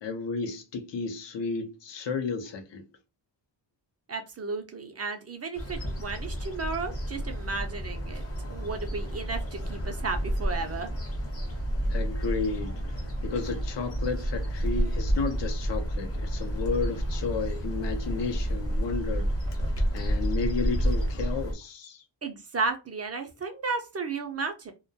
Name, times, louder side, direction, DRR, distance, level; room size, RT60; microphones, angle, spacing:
voice 1, 0.0-2.8 11.9-19.3 19.9-22.0, left 4 dB, 70° left, 0.6 m, -33 dB
voice 2, 4.1-8.2 8.5-10.9 22.2-24.7, right 4 dB, 35° right, 0.4 m, -33 dB
sound 1, 5.5-21.5, equal, 30° left, 0.7 m, -30 dB
2.2 x 2.1 x 2.6 m
wide cardioid pair, 150°, 45 cm